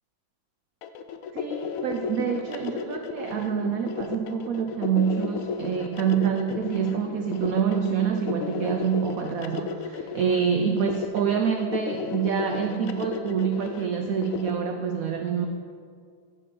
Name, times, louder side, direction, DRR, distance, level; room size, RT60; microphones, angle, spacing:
sound 1, 0.8-14.5, left 6 dB, 90° left, 0.7 m, -34 dB
voice 1, 1.3-15.5, right 7 dB, 80° right, 5 dB, 0.7 m, -26 dB
9.3 x 3.7 x 6.5 m, 2.1 s
omnidirectional pair, 2.0 m